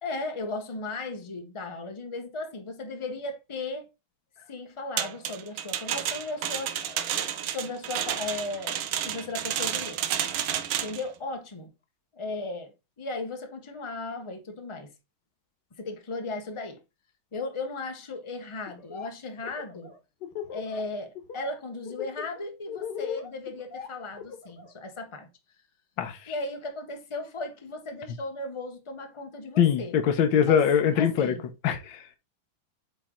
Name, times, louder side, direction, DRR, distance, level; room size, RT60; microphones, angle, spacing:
voice 1, 0.0-3.9 4.5-10.0 10.8-11.7 12.1-14.9 15.8-16.8 17.3-19.9 20.5-25.3 26.3-30.0 30.4-30.7 30.9-31.4, left 3 dB, 30° left, 0.6 m, -36 dB
sound 1, 5.0-11.0, right 10 dB, 85° right, 1.5 m, -31 dB
Laughter, 18.7-19.1 19.4-20.8 21.1-21.5 21.8-24.7, left 7 dB, 60° left, 1.7 m, -38 dB
voice 2, 29.6-31.3 31.6-32.2, left 8 dB, 75° left, 1.6 m, -23 dB
8.5 x 3.2 x 3.7 m
omnidirectional pair, 2.1 m